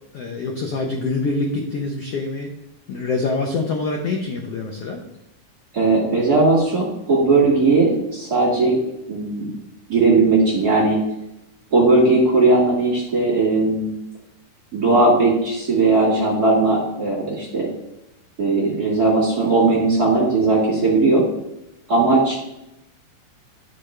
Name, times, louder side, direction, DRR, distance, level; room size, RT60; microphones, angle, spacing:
voice 1, 0.1-2.5 2.9-5.0, left 3 dB, 75° left, 1 dB, 1.4 m, -25 dB
voice 2, 5.7-8.8 9.1-9.5 9.9-11.0 11.7-13.9 14.7-17.7 18.4-21.2 21.9-22.4, right 3 dB, 35° right, -6 dB, 2.2 m, -18 dB
11.0 x 5.1 x 3.3 m, 0.87 s
omnidirectional pair, 3.7 m